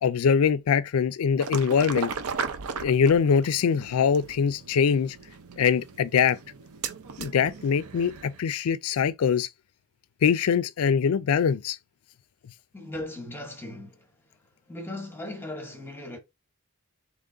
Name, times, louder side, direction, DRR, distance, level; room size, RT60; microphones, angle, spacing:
voice 1, 0.0-2.1 2.8-5.2 5.6-6.4 7.2-9.5 10.2-11.8, left 6 dB, 75° left, 0.4 m, -23 dB
sound 1, 1.4-8.4, right 5 dB, 75° right, 0.6 m, -37 dB
voice 2, 12.7-14.1 14.7-16.2, left 1 dB, 10° left, 1.0 m, -38 dB
3.7 x 3.0 x 3.7 m
head